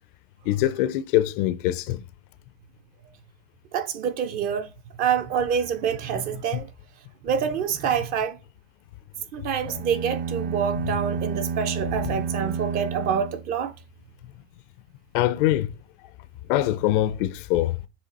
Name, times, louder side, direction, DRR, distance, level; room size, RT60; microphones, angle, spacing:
voice 1, 0.5-2.0 6.5-6.6 12.0-12.2 15.1-15.7 16.5-17.8, left 14 dB, 50° left, 0.5 m, -23 dB
voice 2, 3.7-4.7 5.0-6.7 7.2-8.4 9.3-13.7, right 7 dB, 25° right, 0.5 m, -26 dB
sound 1, 9.6-14.0, right 6 dB, 55° right, 1.3 m, -30 dB
7.5 x 3.2 x 4.1 m
supercardioid pair, 165°, 34 cm